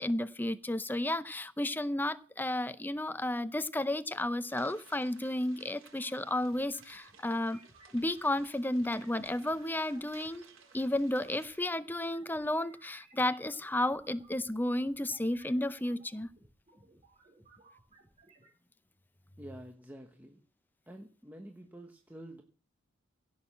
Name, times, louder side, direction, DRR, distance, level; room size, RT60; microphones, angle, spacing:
voice 1, 0.0-7.6 7.9-10.4 10.7-16.3, left 1 dB, 10° left, 14 dB, 0.6 m, -32 dB
sound 1, 4.5-11.6, right 5 dB, 70° right, 3.9 m, -59 dB
sound 2, 5.9-18.5, right 2 dB, 30° right, 4.3 m, -62 dB
voice 2, 19.4-20.4 20.9-22.4, right 1 dB, 10° right, 3 dB, 1.0 m, -48 dB
16.5 x 6.4 x 7.4 m, 0.42 s
head